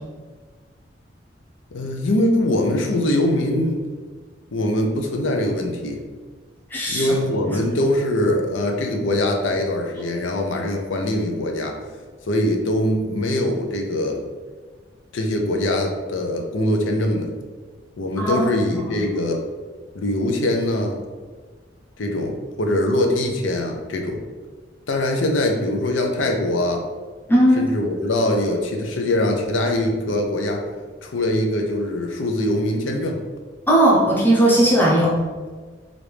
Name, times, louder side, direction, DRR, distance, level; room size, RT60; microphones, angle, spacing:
voice 1, 1.7-3.8 4.5-6.0 6.9-11.8 12.3-14.2 15.1-17.3 18.0-19.4 19.9-21.0 22.0-24.2 24.9-26.8 27.6-30.6 31.0-33.2, left 1 dB, 80° left, 3 dB, 0.5 m, -22 dB
voice 2, 6.7-7.1 7.5-7.6 18.2-18.5 27.3-27.7 33.7-35.1, right 1 dB, 10° left, -5 dB, 0.7 m, -17 dB
4.9 x 2.5 x 3.2 m, 1.4 s
head